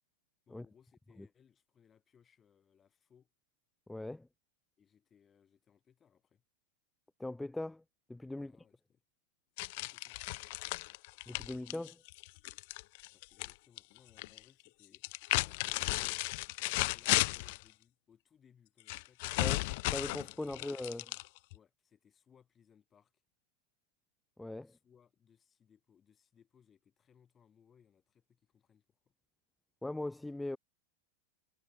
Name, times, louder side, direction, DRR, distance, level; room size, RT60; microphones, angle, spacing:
voice 1, 0.5-3.3 4.8-6.4 8.3-9.0 9.7-10.2 13.1-15.0 15.4-16.2 16.6-19.7 21.5-23.1 24.6-29.0, left 8 dB, 20° left, 4.4 m, -67 dB
voice 2, 3.9-4.3 7.2-7.8 8.1-8.5 11.3-12.0 19.4-19.6 19.9-21.1 24.4-24.7 29.8-30.6, left 2 dB, 5° left, 0.6 m, -40 dB
sound 1, 9.6-13.5 13.8-14.4 14.9-17.6 18.9-21.6, left 25 dB, 50° left, 0.4 m, -34 dB
figure-of-eight pair, 90°, 0 cm